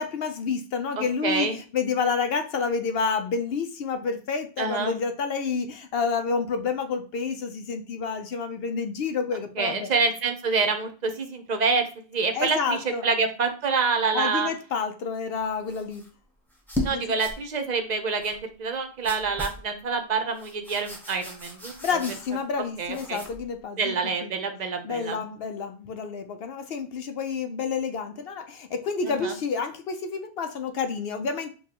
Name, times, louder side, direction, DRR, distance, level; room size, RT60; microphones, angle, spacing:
voice 1, 0.0-9.9 12.3-13.1 14.1-16.0 16.9-17.2 21.8-24.3 24.8-31.5, left 5 dB, 65° left, 7 dB, 0.8 m, -29 dB
voice 2, 1.0-1.6 4.6-5.0 9.6-14.5 16.8-21.7 22.8-23.2 23.8-25.2 29.0-29.3, right 4 dB, 45° right, 6 dB, 0.7 m, -27 dB
sound 1, 15.6-16.1 16.5-16.9 17.2-17.4 18.2-18.4 19.0-19.6 20.3-22.5 22.9-23.4, left 1 dB, ahead, 0.8 m, -36 dB
6.8 x 2.4 x 2.8 m, 0.37 s
omnidirectional pair, 1.1 m